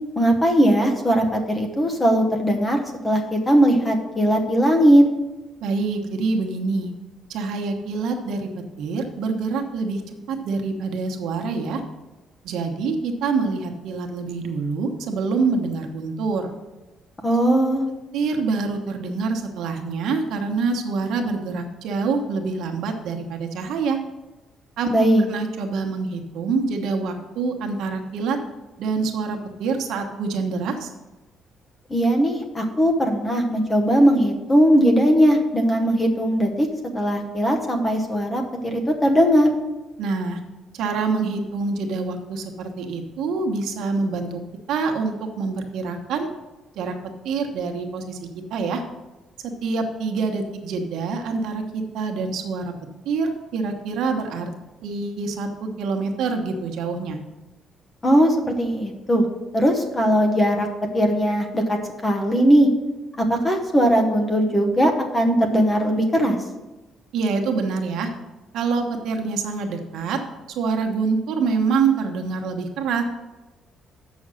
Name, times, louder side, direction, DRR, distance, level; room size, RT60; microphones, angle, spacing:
voice 1, 0.2-5.1 17.2-17.9 24.9-25.3 31.9-36.7 36.9-39.5 58.0-59.3 59.5-60.7 60.9-62.7 63.2-66.4, equal, 15° left, 3 dB, 1.0 m, -19 dB
voice 2, 5.6-6.9 7.3-8.5 8.8-10.0 10.3-11.8 12.4-16.5 18.1-24.0 24.8-24.9 25.3-28.4 28.8-30.9 40.0-40.4 40.7-44.4 44.7-46.3 46.8-46.9 47.2-48.8 49.6-52.7 53.0-54.5 54.8-57.2 67.1-68.1 68.5-70.2 70.5-73.0, right 4 dB, 70° right, 3 dB, 1.1 m, -26 dB
7.5 x 6.2 x 6.3 m, 1.1 s
cardioid pair, 175°, 0 cm